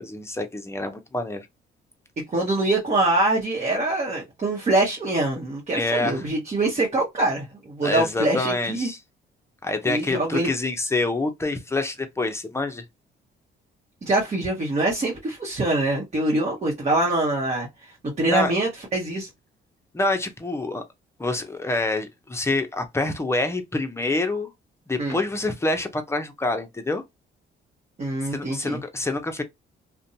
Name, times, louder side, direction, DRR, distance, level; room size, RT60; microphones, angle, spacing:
voice 1, 0.0-1.5 5.7-6.3 7.8-9.0 9.6-12.8 18.2-18.5 19.9-20.8 21.2-24.5 24.9-27.0 28.3-29.4, left 2 dB, 15° left, 0.7 m, -26 dB
voice 2, 2.3-8.9 9.8-10.5 14.0-17.7 18.0-19.3 25.0-25.2 28.0-28.8, right 2 dB, 35° right, 1.1 m, -24 dB
2.5 x 2.2 x 2.7 m
cardioid pair, 90°, 20 cm